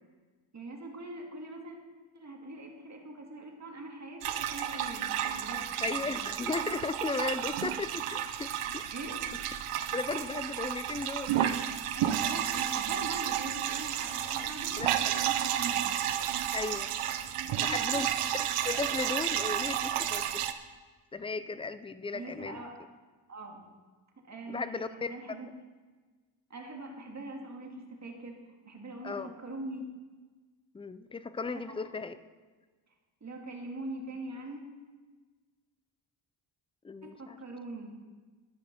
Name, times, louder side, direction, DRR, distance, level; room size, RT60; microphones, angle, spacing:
voice 1, 0.5-1.8 2.1-5.1 5.4-6.1 8.9-9.2 11.9-15.9 17.5-18.3 22.1-22.8 23.3-23.7 24.2-25.5 26.5-28.4 28.6-29.8 31.5-31.8 33.2-34.6 37.0-37.9, right 2 dB, 35° right, 1 dB, 2.0 m, -42 dB
sound 1, 4.2-20.5, right 10 dB, 90° right, 0.8 m, -32 dB
voice 2, 5.8-8.8 9.9-11.6 14.8-15.1 16.5-16.9 17.6-18.1 18.3-20.4 21.1-22.6 24.5-25.1 29.0-29.3 30.7-32.2 36.8-37.4, left 4 dB, 15° left, 13 dB, 0.3 m, -36 dB
12.5 x 8.8 x 5.8 m, 1.4 s
wide cardioid pair, 140°, 50 cm